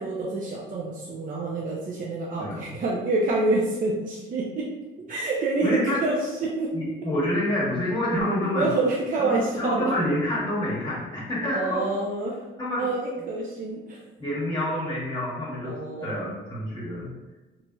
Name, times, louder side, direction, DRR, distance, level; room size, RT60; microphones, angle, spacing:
voice 1, 0.0-4.7 5.1-6.7 8.5-9.9 11.5-12.4 12.8-14.0 15.6-16.4, right 2 dB, 40° right, -4 dB, 0.5 m, -27 dB
voice 2, 2.4-2.8 5.6-6.0 6.7-8.7 9.2-11.8 12.6-12.9 14.2-15.7 16.0-17.1, left 1 dB, 25° left, -8 dB, 1.1 m, -27 dB
3.1 x 2.6 x 2.2 m, 1.2 s
cardioid pair, 90°, 20 cm